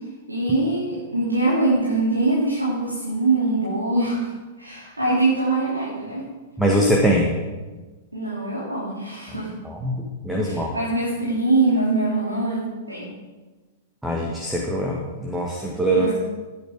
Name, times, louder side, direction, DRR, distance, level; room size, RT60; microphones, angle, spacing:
voice 1, 0.3-4.3 4.6-6.3 8.1-9.5 10.4-13.1 15.9-16.2, right 2 dB, 85° right, -8 dB, 3.8 m, -23 dB
voice 2, 6.6-7.3 9.6-10.7 14.0-16.1, right 1 dB, 5° right, -1 dB, 1.7 m, -22 dB
16.0 x 9.5 x 5.2 m, 1.3 s
figure-of-eight pair, 100°, 0 cm